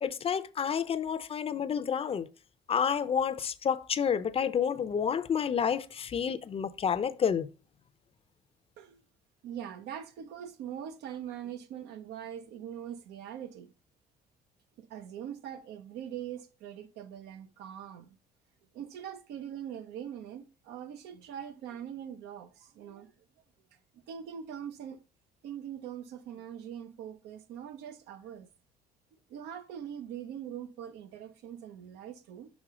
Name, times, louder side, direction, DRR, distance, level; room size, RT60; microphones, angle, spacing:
voice 1, 0.0-2.3 2.7-7.5, left 7 dB, 35° left, 0.5 m, -29 dB
voice 2, 9.4-13.7 14.8-18.2 18.7-23.1 24.1-25.0 25.4-28.5 29.3-32.5, right 9 dB, 85° right, 0.8 m, -42 dB
6.2 x 3.7 x 4.9 m
cardioid pair, 110°, 17 cm